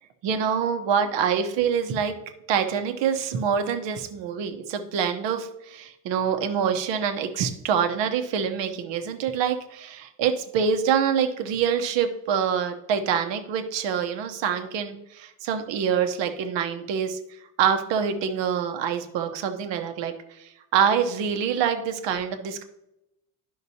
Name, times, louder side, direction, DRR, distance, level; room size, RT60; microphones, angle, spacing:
voice 1, 0.2-2.2 2.5-22.6, right 7 dB, 65° right, 6 dB, 1.0 m, -26 dB
11.0 x 5.7 x 2.8 m, 0.87 s
cardioid pair, 130°, 47 cm